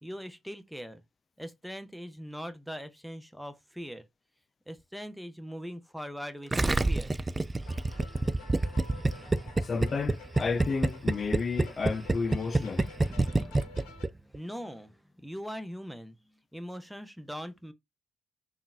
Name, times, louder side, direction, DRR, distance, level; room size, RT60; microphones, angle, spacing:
voice 1, 0.0-1.0 1.4-4.0 4.7-6.5 6.8-7.1 13.9-16.2 16.5-17.7, equal, ahead, 0.7 m, -41 dB
Gurgling, 6.5-14.1 14.3-14.4, right 2 dB, 25° right, 0.3 m, -27 dB
sound 1, 7.5-14.1, left 5 dB, 80° left, 0.8 m, -51 dB
voice 2, 9.6-12.9, left 4 dB, 45° left, 0.5 m, -32 dB
3.7 x 2.5 x 2.3 m
hypercardioid pair, 50°, 0 cm